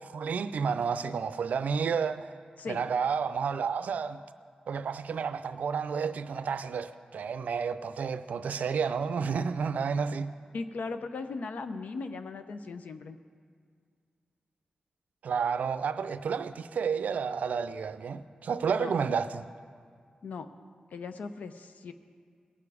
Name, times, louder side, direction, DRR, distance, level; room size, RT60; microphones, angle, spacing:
voice 1, 0.1-2.3 2.7-4.2 4.7-10.3 15.2-19.5, right 6 dB, 85° right, 0.4 m, -31 dB
voice 2, 10.5-13.2 18.8-18.9 20.2-20.5 20.9-21.9, left 4 dB, 85° left, 0.6 m, -38 dB
17.5 x 6.9 x 4.9 m
wide cardioid pair, 85°, 3 cm